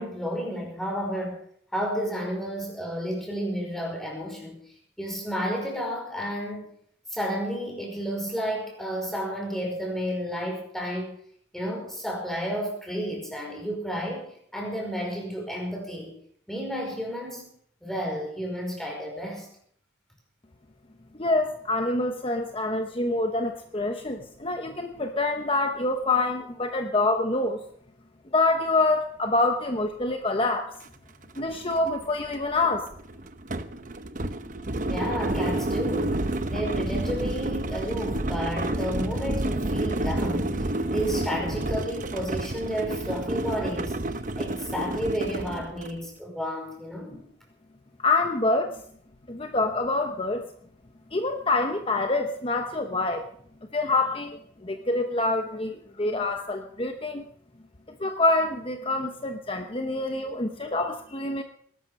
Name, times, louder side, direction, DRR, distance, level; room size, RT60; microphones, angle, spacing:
voice 1, 0.0-1.4 1.7-4.6 5.0-6.7 7.1-11.1 11.5-16.1 16.5-17.5 17.8-19.5 34.8-36.2 36.5-44.0 44.4-47.2, equal, ahead, 0 dB, 5.1 m, -31 dB
voice 2, 21.2-27.6 28.3-30.7 31.4-32.9 48.0-48.8 49.3-50.5 51.1-53.3 53.7-57.3 57.9-61.4, left 2 dB, 25° left, 5 dB, 0.9 m, -26 dB
sound 1, 30.8-30.9 31.2-46.0, right 1 dB, 40° right, 0.9 m, -30 dB
19.5 x 12.0 x 5.5 m, 0.63 s
head